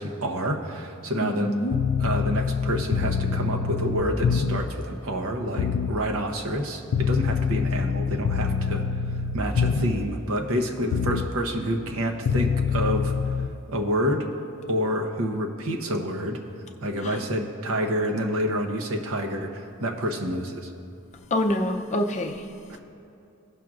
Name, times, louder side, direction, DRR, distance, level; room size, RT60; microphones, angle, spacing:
voice 1, 0.0-1.5 2.0-8.8 9.3-13.3 13.7-14.3 14.7-16.4 16.8-20.7, equal, 65° right, 3 dB, 0.8 m, -28 dB
voice 2, 1.2-1.7 17.0-17.2 21.3-22.4, left 1 dB, 30° left, 4 dB, 0.5 m, -26 dB
sound 1, 1.7-4.8 5.6-6.0 6.9-10.1 10.9-11.3 12.3-13.5, left 6 dB, 85° left, 0.4 m, -25 dB
16.5 x 5.9 x 2.5 m, 2.7 s
head